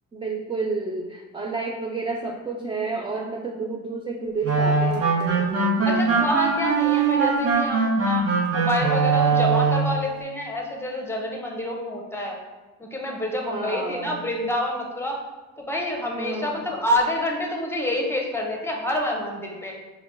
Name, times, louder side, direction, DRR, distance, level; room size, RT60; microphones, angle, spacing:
voice 1, 0.1-6.3 13.4-14.2 16.2-16.6, right 3 dB, 15° right, 0 dB, 0.4 m, -31 dB
sound 1, 4.4-10.0, right 4 dB, 50° right, 1.0 m, -21 dB
voice 2, 5.8-8.3 8.5-12.4 12.8-15.2 15.6-19.8, left 1 dB, 10° left, 0 dB, 0.8 m, -27 dB
4.6 x 2.2 x 3.6 m, 1.2 s
cardioid pair, 90°, 30 cm